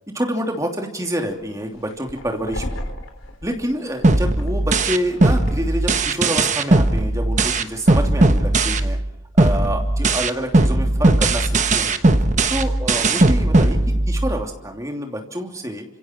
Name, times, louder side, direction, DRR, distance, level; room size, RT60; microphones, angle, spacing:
voice 1, 0.1-2.8 3.4-9.0 9.3-12.0 12.5-15.9, equal, 15° right, 2 dB, 3.0 m, -27 dB
sound 1, 1.3-6.6, left 1 dB, 85° left, 3.9 m, -36 dB
sound 2, 4.0-9.1 9.4-14.4, right 2 dB, 35° right, 1.2 m, -18 dB
29.5 x 27.0 x 4.6 m, 0.82 s
head